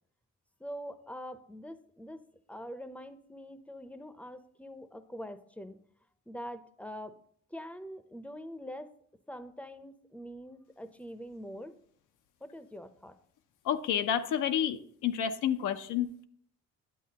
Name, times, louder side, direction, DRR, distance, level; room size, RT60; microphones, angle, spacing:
voice 1, 0.6-2.2 2.5-5.8 6.3-7.2 7.5-8.9 9.3-11.8 12.4-13.1, equal, 5° left, 11 dB, 0.6 m, -44 dB
voice 2, 13.6-16.2, left 9 dB, 85° left, 8 dB, 0.6 m, -30 dB
9.3 x 8.1 x 2.8 m, 0.62 s
cardioid pair, 90°, 30 cm